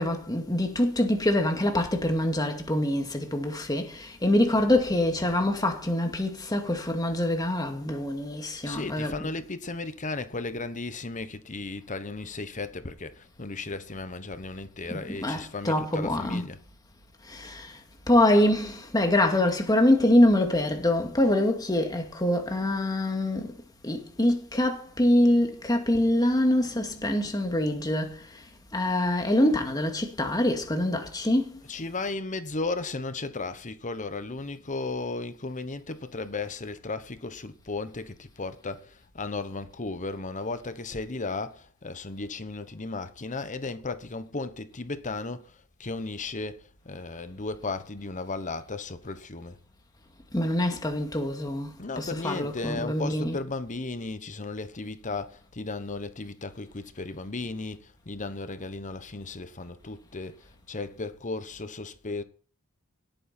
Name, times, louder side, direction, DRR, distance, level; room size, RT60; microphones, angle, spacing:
voice 1, 0.0-9.3 14.9-16.5 17.2-17.8 18.1-23.6 23.8-28.5 28.7-31.6 50.3-53.4, left 1 dB, 20° left, 2.2 m, -25 dB
voice 2, 8.6-16.6 31.6-49.6 51.8-62.2, left 3 dB, 35° left, 1.1 m, -35 dB
18.0 x 9.1 x 4.4 m
head